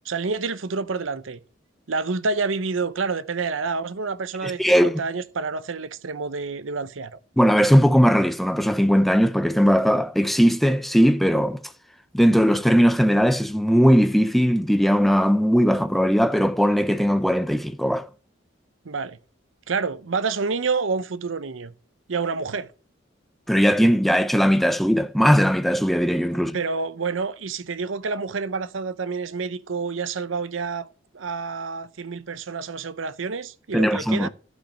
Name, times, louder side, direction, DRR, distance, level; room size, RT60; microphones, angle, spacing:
voice 1, 0.0-1.4 1.9-7.2 18.8-19.2 19.7-21.7 22.1-22.7 26.5-30.9 31.1-34.3, right 4 dB, 85° right, 0.7 m, -28 dB
voice 2, 4.4-5.0 7.4-11.6 12.1-18.1 23.5-26.6 33.7-34.3, equal, ahead, 0.6 m, -19 dB
12.0 x 5.1 x 5.9 m
head